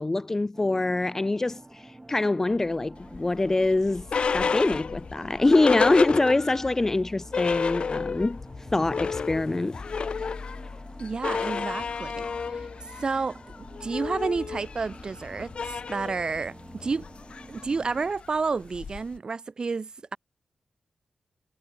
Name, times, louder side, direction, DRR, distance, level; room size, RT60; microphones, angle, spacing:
voice 1, 0.0-4.1 4.3-8.4 8.7-9.8, left 2 dB, 20° left, 0.7 m, -24 dB
sound 1, 0.5-18.1, right 2 dB, 15° right, 2.5 m, -49 dB
sound 2, 2.5-15.7, left 4 dB, 35° left, 2.0 m, -45 dB
sound 3, 3.1-6.7 7.0-7.1 7.3-8.4 8.7-19.2, left 5 dB, 55° left, 2.5 m, -31 dB
voice 2, 11.0-12.7 13.0-17.1 17.5-20.2, right 4 dB, 40° right, 2.8 m, -30 dB
wide cardioid pair, 175°, 2 cm